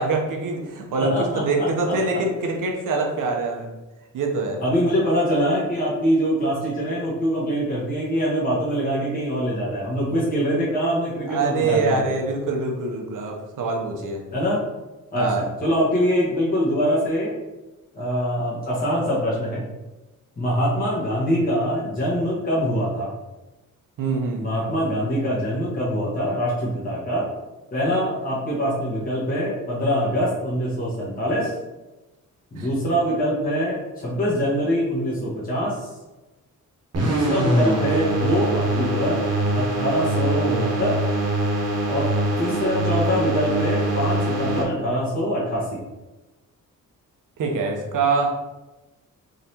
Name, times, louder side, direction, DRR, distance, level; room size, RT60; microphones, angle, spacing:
voice 1, 0.0-3.7 4.1-4.6 11.3-14.2 15.2-15.4 24.0-24.7 32.6-32.7 47.4-48.4, right 3 dB, 70° right, 1 dB, 0.8 m, -24 dB
voice 2, 1.0-2.2 4.6-12.0 14.3-14.6 15.1-17.3 17.9-19.6 20.4-23.1 24.4-27.3 27.7-31.5 32.5-35.8 37.1-39.2 39.5-41.0 41.9-42.1 42.4-45.8, equal, 25° left, -8 dB, 1.2 m, -24 dB
sound 1, 36.9-44.6, right 1 dB, 50° right, 1.1 m, -23 dB
3.8 x 3.2 x 2.8 m, 1.1 s
cardioid pair, 115°, 32 cm